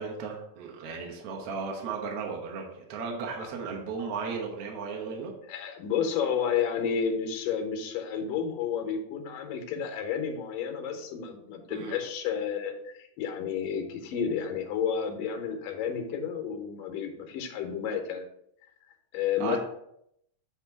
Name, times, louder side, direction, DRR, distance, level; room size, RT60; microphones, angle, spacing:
voice 1, 0.0-5.3 11.7-12.0 19.4-19.6, right 5 dB, 65° right, 0 dB, 1.5 m, -35 dB
voice 2, 5.5-18.2 19.1-19.6, left 7 dB, 75° left, 4 dB, 2.4 m, -31 dB
8.2 x 2.9 x 5.8 m, 0.76 s
omnidirectional pair, 4.0 m